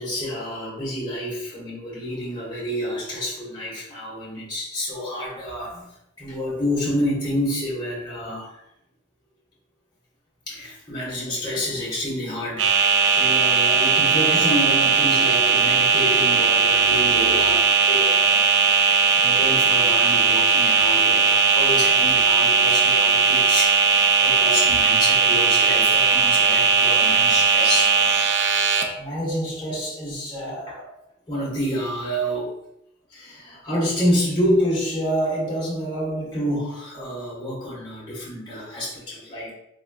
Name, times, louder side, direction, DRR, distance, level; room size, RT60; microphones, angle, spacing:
voice 1, 0.0-5.9 6.2-8.6 10.5-18.5 18.9-28.0 28.4-30.9 31.3-32.5 33.1-39.5, equal, 25° left, -7 dB, 1.4 m, -28 dB
sound 1, 12.6-28.8, right 5 dB, 75° right, 0.4 m, -18 dB
3.7 x 3.2 x 2.3 m, 0.81 s
head